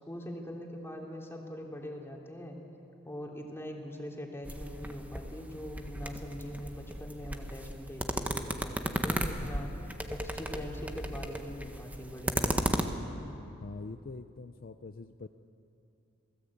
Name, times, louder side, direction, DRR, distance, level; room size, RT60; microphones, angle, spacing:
voice 1, 0.0-2.6 3.0-9.7 10.1-12.7, equal, 10° left, 0 dB, 3.1 m, -42 dB
sound 1, 4.4-12.8, right 1 dB, 5° right, 1.3 m, -35 dB
voice 2, 13.6-15.3, left 3 dB, 45° left, 8 dB, 0.6 m, -44 dB
27.5 x 18.0 x 8.6 m, 2.8 s
head